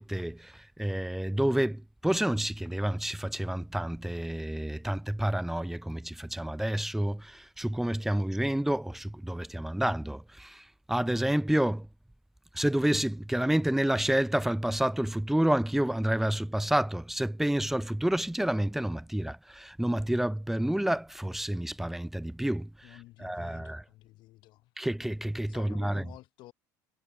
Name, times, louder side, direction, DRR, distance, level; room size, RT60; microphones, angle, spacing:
voice 1, 0.0-11.9 12.5-22.7 23.2-23.8 24.8-26.0, right 1 dB, 5° right, 0.3 m, -29 dB
voice 2, 22.8-24.7 25.5-26.5, left 18 dB, 65° left, 1.9 m, -52 dB
supercardioid pair, 100°, 9 cm